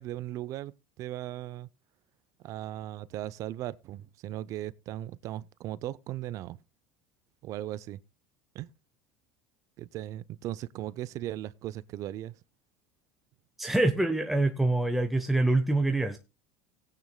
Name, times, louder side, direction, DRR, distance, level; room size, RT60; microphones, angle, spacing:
voice 1, 0.0-1.7 2.4-6.6 7.4-8.0 8.5-8.7 9.8-12.4, right 13 dB, 50° right, 0.5 m, -38 dB
voice 2, 13.6-16.2, right 2 dB, ahead, 0.9 m, -25 dB
18.0 x 9.1 x 2.2 m
supercardioid pair, 100°, 7 cm